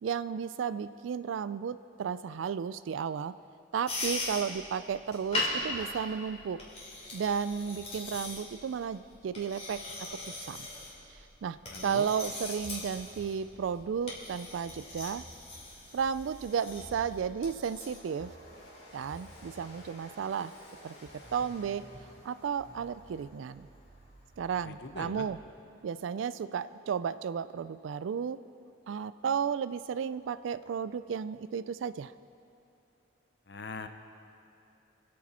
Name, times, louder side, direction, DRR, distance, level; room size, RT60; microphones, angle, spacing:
voice 1, 0.0-3.3 3.7-6.6 7.1-9.8 10.3-10.7 11.4-11.6 11.8-15.2 15.9-18.3 18.9-20.5 20.8-20.9 21.3-21.9 22.2-23.7 24.4-25.4 25.8-28.4 28.9-32.1, right 7 dB, 80° right, 14 dB, 0.3 m, -33 dB
sound 1, 3.9-18.0, left 2 dB, 35° left, 2.7 m, -40 dB
voice 2, 11.7-12.1 24.6-25.3 33.5-33.9, left 3 dB, 60° left, 8 dB, 0.7 m, -42 dB
sound 2, 12.3-25.6, equal, 45° right, 2.0 m, -55 dB
Train, 15.3-25.4, left 1 dB, 80° left, 4.2 m, -56 dB
25.0 x 8.5 x 4.3 m, 2.7 s
head